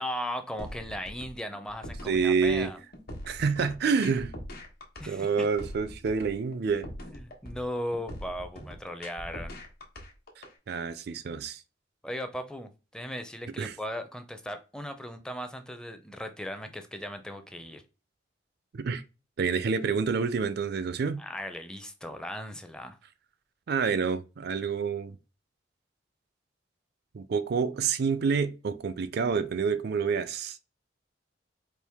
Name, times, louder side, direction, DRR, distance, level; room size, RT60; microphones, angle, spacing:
voice 1, 0.0-2.8 5.0-5.5 7.0-9.6 12.0-17.8 21.2-23.0, equal, 5° left, 0.5 m, -37 dB
sound 1, 0.6-10.5, left 1 dB, 55° left, 1.2 m, -42 dB
voice 2, 2.1-2.7 3.3-4.3 5.1-6.9 10.7-11.6 13.6-13.7 18.7-19.0 19.4-21.2 23.7-25.2 27.1-30.6, right 5 dB, 60° right, 0.4 m, -28 dB
4.5 x 2.5 x 3.4 m
head